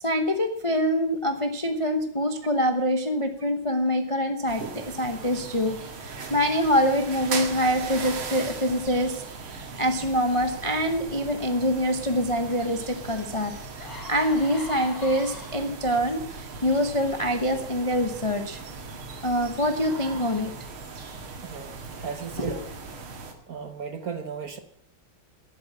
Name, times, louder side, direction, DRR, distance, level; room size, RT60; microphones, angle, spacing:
voice 1, 0.0-9.2 9.5-18.6 19.2-20.5 22.4-22.6, equal, 25° left, 6 dB, 0.6 m, -25 dB
sound 1, 4.5-23.3, right 4 dB, 85° right, 2.7 m, -38 dB
sound 2, 13.0-13.1 13.6-16.0 16.7-16.9, left 2 dB, 70° left, 4.6 m, -41 dB
voice 2, 21.4-21.8 22.0-22.6 23.5-24.6, right 6 dB, 50° right, 9 dB, 1.3 m, -35 dB
11.0 x 8.8 x 9.6 m, 0.70 s
omnidirectional pair, 2.3 m